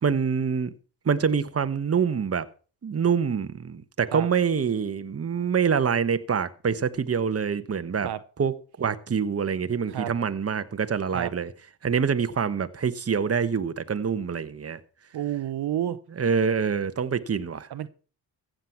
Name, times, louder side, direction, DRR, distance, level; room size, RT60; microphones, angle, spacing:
voice 1, 0.0-0.7 1.0-2.5 2.8-8.1 8.4-11.5 11.8-14.8 16.2-17.7, right 6 dB, 35° right, 1.2 m, -25 dB
voice 2, 15.1-16.0 17.7-17.9, right 11 dB, 65° right, 0.9 m, -30 dB
15.0 x 7.8 x 5.8 m
cardioid pair, 75°, 41 cm